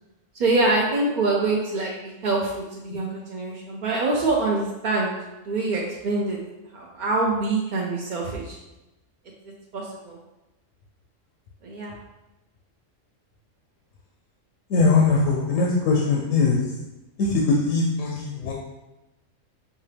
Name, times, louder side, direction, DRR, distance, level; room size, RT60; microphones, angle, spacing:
voice 1, 0.3-5.1 5.4-6.4 6.7-8.6 9.7-10.2 11.6-11.9, right 2 dB, 60° right, -3 dB, 0.5 m, -25 dB
voice 2, 14.7-16.6 17.2-18.5, left 4 dB, 75° left, -1 dB, 1.0 m, -21 dB
5.3 x 2.4 x 3.3 m, 1.0 s
omnidirectional pair, 1.3 m